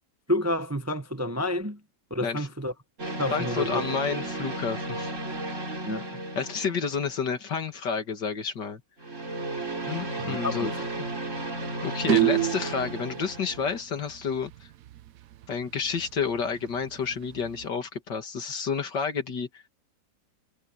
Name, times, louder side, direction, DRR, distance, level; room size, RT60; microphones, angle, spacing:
voice 1, 0.3-1.8 2.1-2.7 3.2-3.8 5.8-6.1 10.2-10.7, left 1 dB, 20° right, 0.4 m, -29 dB
sound 1, 3.0-7.5 9.0-13.8, right 2 dB, 40° right, 3.6 m, -34 dB
voice 2, 3.3-5.1 6.4-8.8 9.9-10.8 11.8-14.5 15.5-19.7, left 6 dB, 70° left, 2.7 m, -30 dB
sound 2, 12.1-12.8 14.5-14.6 14.9-15.0 15.4-15.5 16.0-16.1 16.9-17.7, right 15 dB, 70° right, 0.9 m, -24 dB
omnidirectional pair, 2.0 m